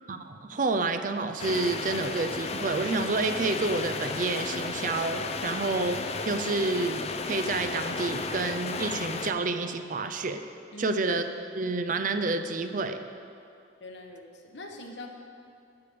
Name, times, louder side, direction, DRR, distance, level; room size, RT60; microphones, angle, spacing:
voice 1, 0.1-6.0 6.3-10.4 10.8-11.2 11.5-13.0, right 3 dB, 45° right, 8 dB, 0.5 m, -29 dB
sound 1, 1.4-9.3, left 4 dB, 35° left, 0.5 m, -33 dB
voice 2, 13.8-15.1, left 2 dB, 70° left, 3 dB, 1.1 m, -43 dB
11.5 x 6.8 x 5.2 m, 2.5 s
head